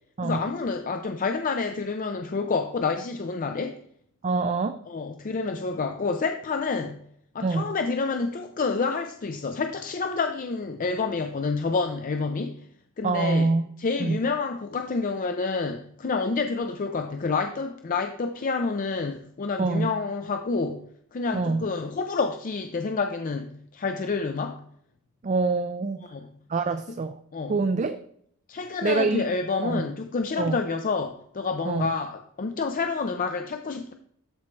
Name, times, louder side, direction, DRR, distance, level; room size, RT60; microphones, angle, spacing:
voice 1, 0.2-3.8 4.9-7.0 7.3-12.7 13.0-13.5 13.8-24.6 26.1-26.3 26.9-27.0 27.3-27.6 28.5-33.9, left 4 dB, 35° left, 6 dB, 0.4 m, -28 dB
voice 2, 4.2-4.8 7.4-7.7 13.0-13.7 14.0-14.2 19.6-19.9 21.3-21.6 25.2-26.0 26.5-27.2 27.5-28.0 28.8-29.2 29.6-29.8 30.4-30.6 31.7-31.9, right 3 dB, 35° right, 9 dB, 0.4 m, -25 dB
13.0 x 4.5 x 3.2 m, 0.67 s
head